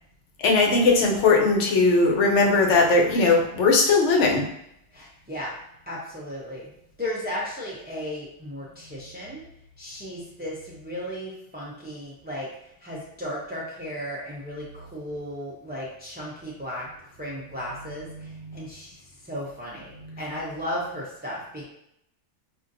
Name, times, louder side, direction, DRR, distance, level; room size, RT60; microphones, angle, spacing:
voice 1, 0.4-4.5, left 3 dB, 70° left, 0 dB, 1.0 m, -19 dB
voice 2, 4.9-5.5 5.9-6.7 7.0-9.4 9.8-16.9 17.2-21.6, equal, 15° right, -6 dB, 0.4 m, -35 dB
5.1 x 2.5 x 2.6 m, 0.76 s
omnidirectional pair, 1.3 m